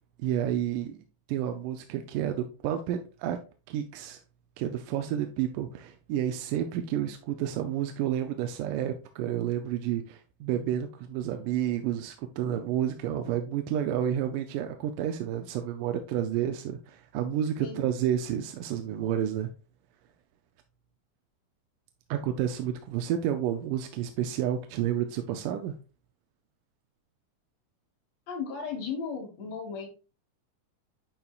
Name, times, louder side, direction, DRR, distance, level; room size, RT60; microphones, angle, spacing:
voice 1, 0.2-1.0 1.3-3.4 3.7-4.2 4.6-19.5 22.1-25.8, right 10 dB, 80° right, 2.2 m, -30 dB
voice 2, 17.6-17.9 28.3-29.9, left 5 dB, 60° left, 2.4 m, -35 dB
10.5 x 4.4 x 2.4 m
omnidirectional pair, 3.8 m